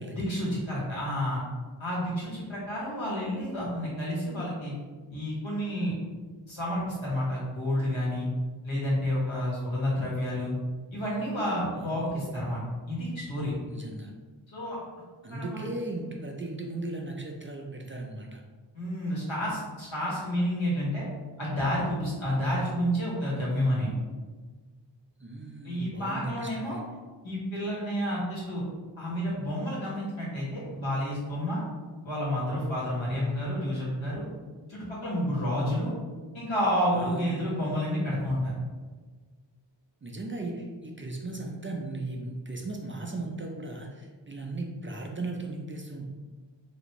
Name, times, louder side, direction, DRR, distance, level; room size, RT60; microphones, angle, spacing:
voice 1, 0.1-1.4 1.8-4.7 5.1-5.9 6.5-8.3 8.6-10.5 10.9-12.6 12.9-13.5 14.5-14.8 15.3-15.7 18.7-21.0 21.4-23.9 25.6-26.8 27.2-28.6 29.0-31.6 32.0-34.2 34.7-35.9 36.3-38.5, equal, 85° left, -7 dB, 1.4 m, -30 dB
voice 2, 11.8-12.5 13.7-14.1 15.2-18.4 25.2-26.8 36.9-37.5 40.0-46.1, right 2 dB, 30° right, 1 dB, 0.3 m, -37 dB
3.3 x 2.5 x 2.9 m, 1.4 s
wide cardioid pair, 60°, 46 cm